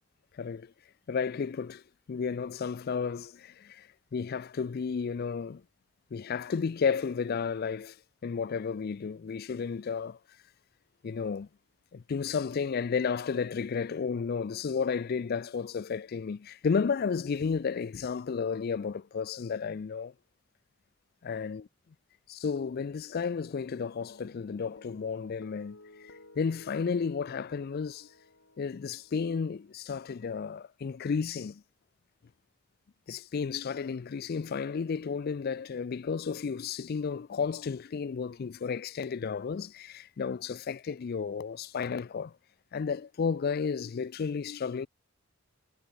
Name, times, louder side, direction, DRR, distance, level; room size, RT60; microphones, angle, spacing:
voice 1, 0.4-0.7 1.1-1.8 2.1-5.6 6.1-8.0 8.2-10.2 11.0-11.5 11.9-20.1 21.2-21.6 22.3-25.8 26.0-28.1 28.6-31.6 33.1-42.3 42.7-44.9, left 5 dB, 50° left, 0.4 m, -32 dB
Guitar, 24.0-30.6, left 2 dB, 75° left, 5.4 m, -57 dB
head